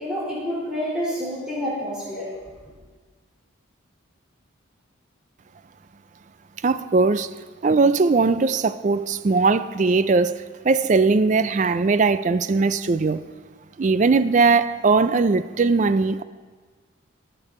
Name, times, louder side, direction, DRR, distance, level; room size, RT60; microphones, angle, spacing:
voice 1, 0.0-2.3, equal, 5° right, 4.2 m, -28 dB
voice 2, 6.6-7.3 7.6-10.4 10.6-13.2 13.8-16.2, right 4 dB, 35° right, 0.3 m, -19 dB
19.5 x 6.9 x 4.3 m
head